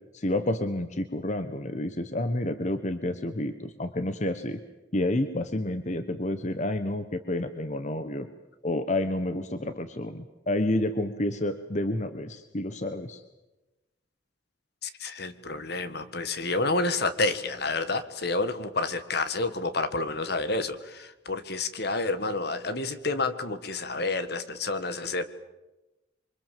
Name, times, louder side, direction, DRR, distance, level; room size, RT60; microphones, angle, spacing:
voice 1, 0.1-4.6 4.9-8.3 8.6-13.2, left 1 dB, 40° left, 9 dB, 1.2 m, -29 dB
voice 2, 14.8-25.2, left 3 dB, 60° left, 11 dB, 1.8 m, -29 dB
27.5 x 24.5 x 7.7 m, 1.0 s
head